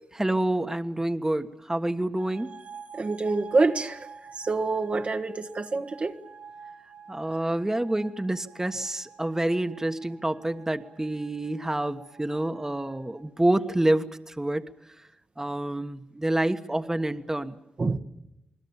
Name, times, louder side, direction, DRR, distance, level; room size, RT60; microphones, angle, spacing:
voice 1, 0.2-2.5 7.1-14.6 15.4-17.5, right 1 dB, 20° right, 1.4 m, -27 dB
sound 1, 2.2-13.3, right 6 dB, 80° right, 2.7 m, -49 dB
voice 2, 3.0-4.0 4.4-6.2 17.8-18.0, right 3 dB, 55° right, 1.5 m, -26 dB
28.5 x 20.5 x 7.3 m
supercardioid pair, 40°, 3 cm